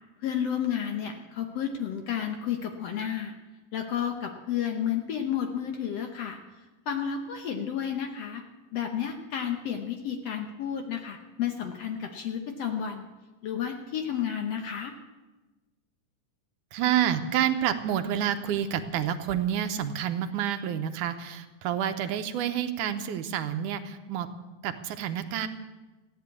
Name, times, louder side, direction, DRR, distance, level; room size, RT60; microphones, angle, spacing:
voice 1, 0.2-3.3 3.7-6.4 6.9-8.4 8.7-13.1 13.4-14.9, left 8 dB, 65° left, 5 dB, 1.7 m, -31 dB
voice 2, 16.7-24.3 24.6-25.5, right 10 dB, 75° right, 9 dB, 2.2 m, -28 dB
15.0 x 10.5 x 8.3 m, 1.2 s
omnidirectional pair, 3.8 m